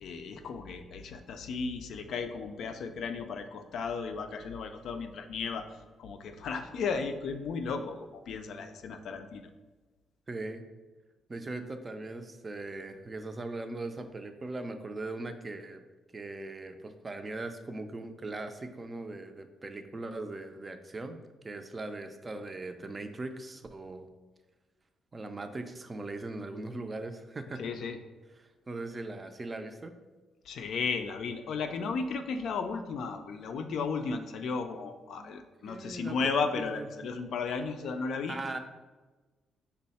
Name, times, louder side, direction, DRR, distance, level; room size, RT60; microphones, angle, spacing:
voice 1, 0.0-5.6 6.0-9.5 27.6-28.0 30.5-38.4, left 5 dB, 75° left, 7 dB, 0.4 m, -34 dB
voice 2, 10.3-10.6 11.3-15.8 16.1-21.2 21.4-24.1 25.1-27.7 28.4-29.9 35.2-37.1 38.3-38.6, right 2 dB, 25° right, 7 dB, 0.4 m, -40 dB
5.3 x 2.1 x 4.1 m, 1.2 s
cardioid pair, 100°, 0 cm